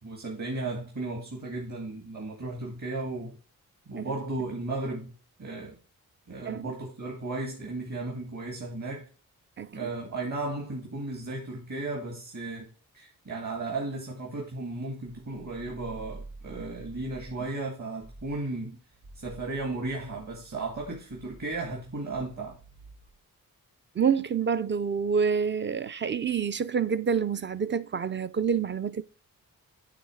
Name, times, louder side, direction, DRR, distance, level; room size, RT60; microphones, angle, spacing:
voice 1, 0.0-3.3 3.9-5.1 5.4-5.8 6.3-9.1 9.7-18.8 19.1-22.6, right 2 dB, 55° right, 1.9 m, -35 dB
voice 2, 9.6-9.9 24.0-29.0, right 6 dB, 35° right, 0.4 m, -27 dB
sound 1, 15.1-17.6 18.0-18.5 18.9-23.2, right 2 dB, 85° right, 2.0 m, -49 dB
8.5 x 3.2 x 4.9 m
cardioid pair, 50°, 35 cm